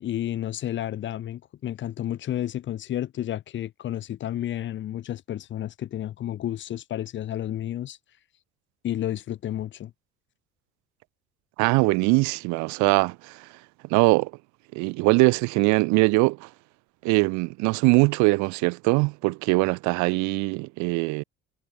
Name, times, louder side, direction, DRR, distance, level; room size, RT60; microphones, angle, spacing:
voice 1, 0.0-8.0 8.8-9.9, left 12 dB, 40° left, 0.5 m, -31 dB
voice 2, 11.6-13.5 13.9-14.3 14.7-16.5 17.0-21.2, right 26 dB, 65° right, 0.7 m, -22 dB
hypercardioid pair, 60°, 31 cm